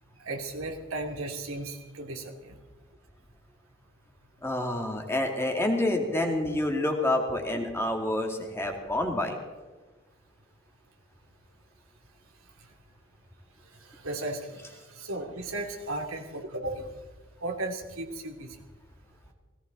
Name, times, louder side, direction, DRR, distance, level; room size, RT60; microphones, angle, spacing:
voice 1, 0.2-2.6 13.9-16.8 17.4-18.6, right 2 dB, 80° right, 2 dB, 2.9 m, -35 dB
voice 2, 4.4-9.4, left 1 dB, 10° left, 3 dB, 2.2 m, -28 dB
18.0 x 17.5 x 4.1 m, 1.3 s
head